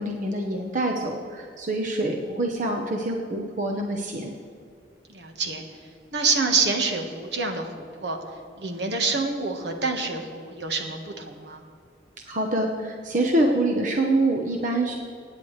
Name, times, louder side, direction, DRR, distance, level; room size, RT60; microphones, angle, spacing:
voice 1, 0.0-4.3 12.3-14.9, right 1 dB, 45° right, 1 dB, 1.0 m, -25 dB
voice 2, 5.1-5.6 6.1-7.7 8.0-8.2 8.6-11.6, right 4 dB, 70° right, 4 dB, 1.5 m, -26 dB
24.5 x 9.7 x 3.3 m, 2.3 s
head